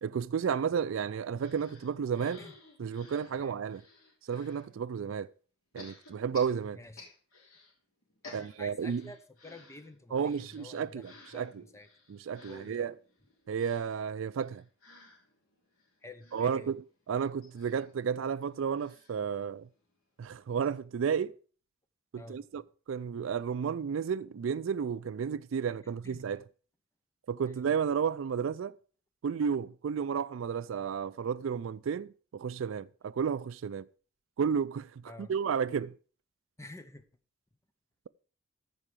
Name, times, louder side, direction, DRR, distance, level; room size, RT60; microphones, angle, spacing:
voice 1, 0.0-2.4 2.8-3.8 4.3-5.3 5.7-6.8 8.3-9.1 10.1-11.6 12.1-12.9 13.5-14.6 16.3-16.8 17.1-19.7 20.2-21.3 22.1-22.6 22.9-26.4 27.3-28.7 29.2-33.9 34.4-35.9, right 7 dB, 65° right, 0.4 m, -32 dB
sound 1, 1.4-4.7 5.8-7.7 8.0-20.0 20.3-20.4 20.6-20.8, left 3 dB, 90° left, 3.1 m, -56 dB
voice 2, 2.2-2.6 3.4-3.5 6.7-7.1 8.2-11.1 11.3-11.9 12.5-12.9 16.0-16.7 22.2-22.4 26.0-26.2 27.5-27.6 35.1-35.3 36.6-37.0, left 2 dB, 15° left, 0.8 m, -49 dB
14.5 x 4.8 x 4.8 m
head